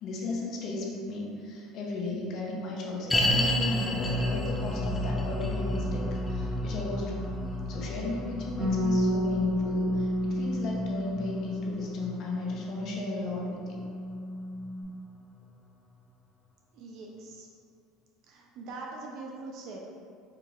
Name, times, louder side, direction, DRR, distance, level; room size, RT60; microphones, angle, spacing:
voice 1, 0.0-7.3 7.7-13.8, left 2 dB, 45° left, -2 dB, 0.7 m, -35 dB
sound 1, 3.1-14.4 14.6-14.7 15.4-15.5, left 1 dB, 10° left, 0.3 m, -32 dB
Bass guitar, 8.6-14.8, equal, 30° right, 0.9 m, -31 dB
voice 2, 16.7-17.5 18.2-19.8, right 3 dB, 55° right, -1 dB, 0.4 m, -42 dB
4.6 x 2.3 x 3.0 m, 2.3 s
cardioid pair, 150°, 0 cm